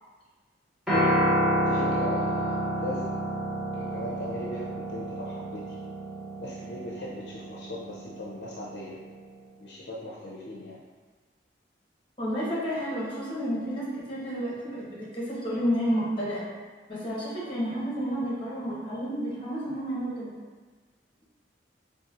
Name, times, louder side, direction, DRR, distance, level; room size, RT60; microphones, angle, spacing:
Piano, 0.9-9.1, right 1 dB, 5° right, 0.8 m, -29 dB
voice 1, 1.6-3.2 3.7-5.8 6.4-9.0 9.6-10.8, left 1 dB, 65° left, -5 dB, 0.5 m, -38 dB
voice 2, 12.2-16.5 16.9-20.3, equal, 30° left, -7 dB, 1.1 m, -30 dB
4.1 x 2.7 x 2.5 m, 1.4 s
head